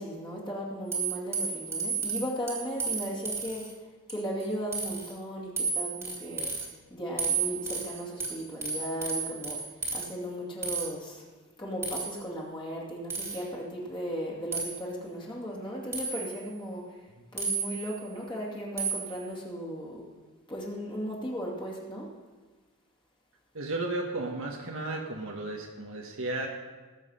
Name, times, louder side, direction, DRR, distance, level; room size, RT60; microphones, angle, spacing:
voice 1, 0.0-3.6 4.1-11.2 11.6-17.0 17.3-20.0 20.5-22.1, equal, 20° left, -4 dB, 2.4 m, -36 dB
sound 1, 0.9-3.7 4.1-4.5 4.7-5.1 5.6-6.7 7.2-10.1 10.6-10.9 11.8-12.2 13.1-13.5 14.5-14.8 15.9-16.4 17.4-18.0 18.8-19.2, right 5 dB, 10° right, 2.2 m, -32 dB
voice 2, 23.5-26.5, right 2 dB, 65° right, 0 dB, 1.4 m, -34 dB
19.0 x 7.4 x 5.7 m, 1.3 s
head